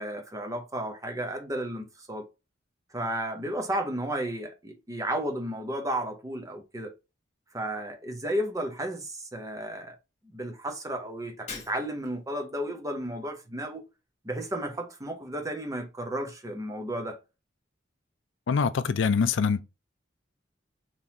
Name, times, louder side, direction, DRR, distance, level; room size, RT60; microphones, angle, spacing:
voice 1, 0.0-2.2 2.9-6.9 7.5-10.0 10.3-13.8 14.2-17.2, right 1 dB, 15° right, 0.7 m, -33 dB
Shatter, 11.5-12.3, left 4 dB, 35° left, 1.3 m, -42 dB
voice 2, 18.5-19.6, left 5 dB, 75° left, 0.4 m, -24 dB
3.7 x 2.9 x 2.7 m
head